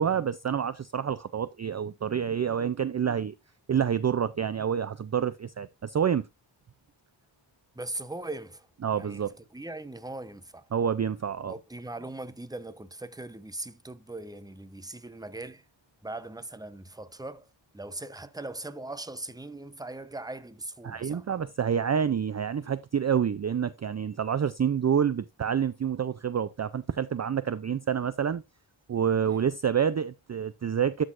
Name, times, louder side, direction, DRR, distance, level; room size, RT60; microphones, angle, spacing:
voice 1, 0.0-3.3 3.7-6.3 8.8-9.3 10.7-11.5 20.8-28.4 28.9-31.0, right 8 dB, 35° right, 0.4 m, -28 dB
voice 2, 7.7-10.7 11.5-15.6 16.0-21.3 29.3-29.5, right 2 dB, 10° right, 0.7 m, -40 dB
12.5 x 6.3 x 2.5 m
wide cardioid pair, 80°, 48 cm